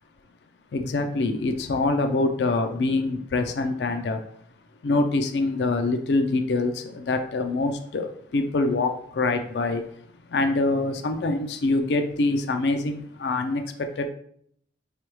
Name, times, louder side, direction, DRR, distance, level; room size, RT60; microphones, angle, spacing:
voice 1, 0.7-4.2 4.8-9.8 10.3-14.1, left 2 dB, 65° left, 0.4 m, -25 dB
4.5 x 3.3 x 3.0 m
head